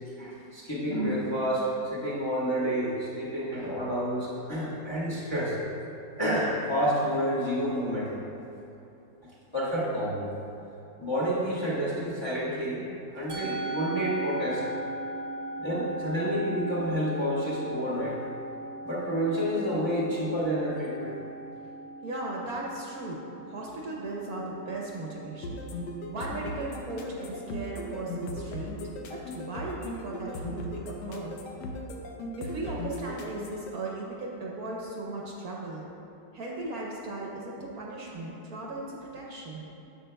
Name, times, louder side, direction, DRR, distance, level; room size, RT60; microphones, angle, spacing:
voice 1, 0.2-5.6 6.2-8.1 9.5-10.3 11.0-12.8 13.1-14.6 15.6-18.2 18.8-21.2, equal, 15° left, -7 dB, 1.2 m, -29 dB
Musical instrument, 13.3-31.8, right 1 dB, 90° right, 1.6 m, -40 dB
voice 2, 22.0-25.6 26.1-28.7 29.1-31.4 32.4-35.9 36.3-39.6, right 2 dB, 60° right, -3 dB, 1.3 m, -37 dB
sound 1, 25.4-33.7, left 2 dB, 70° left, 1.3 m, -37 dB
10.0 x 7.5 x 2.2 m, 2.9 s
omnidirectional pair, 2.0 m